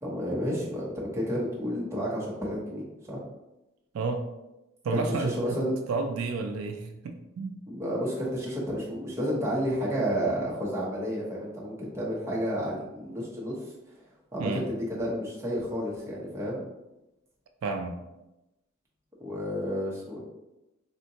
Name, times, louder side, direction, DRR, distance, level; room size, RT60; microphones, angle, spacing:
voice 1, 0.0-3.2 4.9-5.7 7.7-13.7 14.3-16.6 19.2-20.2, equal, 15° right, -5 dB, 0.7 m, -31 dB
voice 2, 3.9-4.3 4.8-5.4 5.9-7.6 14.4-14.6 17.6-18.0, right 4 dB, 80° right, 5 dB, 0.3 m, -30 dB
3.6 x 2.1 x 2.7 m, 0.95 s
head